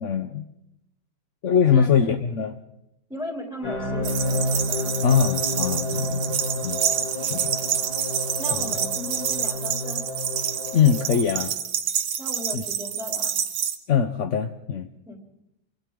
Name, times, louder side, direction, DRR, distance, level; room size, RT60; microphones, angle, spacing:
voice 1, 0.0-0.5 1.4-2.6 5.0-6.8 7.2-7.6 8.5-8.8 10.7-11.5 12.5-12.6 13.9-14.9, left 7 dB, 55° left, 7 dB, 0.9 m, -22 dB
voice 2, 3.1-5.0 8.4-10.0 12.2-13.4 15.1-15.2, left 1 dB, ahead, 0 dB, 3.2 m, -37 dB
sound 1, 3.6-11.2, left 1 dB, 85° left, 6.0 m, -30 dB
sound 2, 4.0-13.8, right 8 dB, 90° right, 2.0 m, -28 dB
28.5 x 24.5 x 3.8 m, 0.84 s
omnidirectional pair, 2.1 m